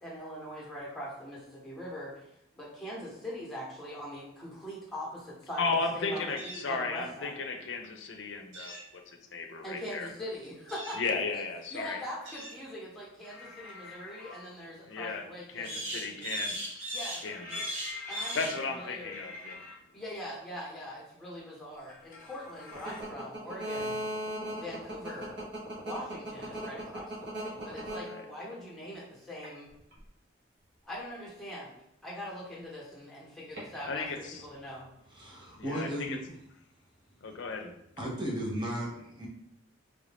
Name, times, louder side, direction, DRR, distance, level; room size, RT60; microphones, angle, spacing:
voice 1, 0.0-2.3 2.6-5.6 5.9-7.4 9.6-11.4 11.7-16.3 16.9-17.2 18.1-19.5 19.9-24.0 24.5-25.4 25.8-29.7 30.8-34.1 34.4-34.9 37.6-37.7, equal, ahead, -6 dB, 1.0 m, -42 dB
voice 2, 5.6-10.1 11.0-12.0 14.9-16.9 17.2-17.9 18.3-19.6 28.1-28.2 33.9-34.4 35.6-36.2 37.2-37.7, left 4 dB, 65° left, 5 dB, 0.5 m, -35 dB
sound 1, 6.4-6.7 8.5-8.9 10.7-11.0 12.2-12.6 15.6-18.6, right 1 dB, 75° right, 0.9 m, -38 dB
sound 2, 13.2-14.4 17.2-19.7 21.7-23.0, left 3 dB, 40° left, 0.8 m, -46 dB
sound 3, 22.7-28.7 29.4-30.0 33.6-33.7, right 1 dB, 55° right, 1.1 m, -37 dB
voice 3, 35.1-36.3 38.0-39.3, right 1 dB, 25° right, -3 dB, 0.6 m, -35 dB
3.1 x 2.5 x 3.4 m, 0.80 s
head